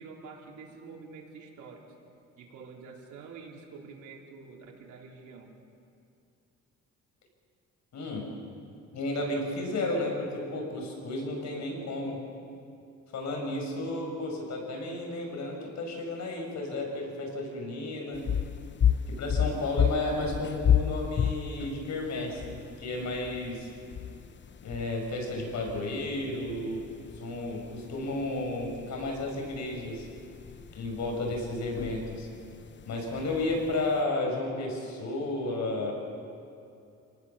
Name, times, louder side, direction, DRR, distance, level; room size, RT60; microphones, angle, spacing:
voice 1, 0.0-1.8 2.4-5.5, right 4 dB, 80° right, -1 dB, 4.2 m, -47 dB
voice 2, 7.9-8.3 8.9-12.2 13.1-18.3 19.1-23.7 24.6-26.8 27.2-30.1 30.8-32.3 32.9-35.9, left 2 dB, 65° left, 1 dB, 7.1 m, -32 dB
sound 1, 18.1-34.0, left 8 dB, 40° left, 0.7 m, -32 dB
28.5 x 19.0 x 7.2 m, 2.6 s
cardioid pair, 90°, 30 cm